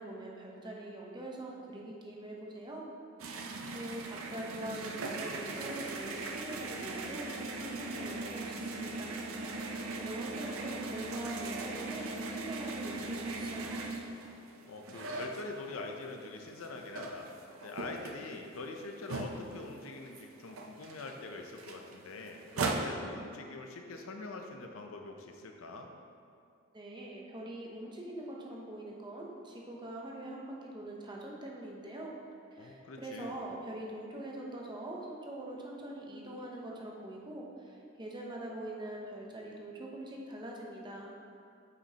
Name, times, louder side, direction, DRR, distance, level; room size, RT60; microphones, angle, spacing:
voice 1, 0.0-2.9 3.7-9.2 9.5-9.6 10.0-13.8 26.7-32.1 32.5-41.2, right 1 dB, 20° right, -2 dB, 0.8 m, -43 dB
sound 1, 3.2-16.0 16.4-19.8 20.1-20.2 20.5-22.8, right 3 dB, 90° right, 0.6 m, -39 dB
voice 2, 14.6-17.3 17.6-25.9 32.6-33.4, left 3 dB, 85° left, 3 dB, 0.6 m, -44 dB
8.0 x 5.2 x 2.8 m, 2.5 s
head